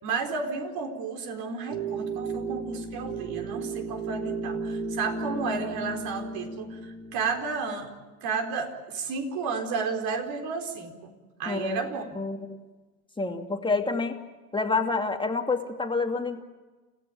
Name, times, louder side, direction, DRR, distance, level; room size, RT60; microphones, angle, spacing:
voice 1, 0.0-7.9 8.2-11.1 11.4-12.0, right 5 dB, 50° right, 4 dB, 4.5 m, -32 dB
sound 1, 1.7-7.8, right 3 dB, 65° right, 3.4 m, -34 dB
voice 2, 11.5-11.8 12.2-12.5 13.2-14.1 14.5-16.4, left 3 dB, 10° left, 4 dB, 2.5 m, -28 dB
29.5 x 15.5 x 8.6 m, 1.3 s
hypercardioid pair, 100°, 45 cm